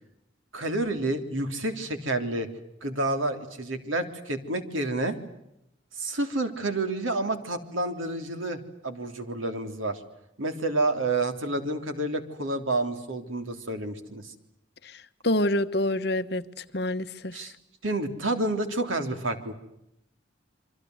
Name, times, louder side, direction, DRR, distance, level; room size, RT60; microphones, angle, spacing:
voice 1, 0.5-2.5 2.8-5.2 6.0-10.0 10.4-14.3 17.3-17.5 17.8-19.5, right 2 dB, 90° right, 3.5 m, -29 dB
voice 2, 14.8-17.4, left 1 dB, 55° left, 1.3 m, -27 dB
28.0 x 25.0 x 8.0 m
head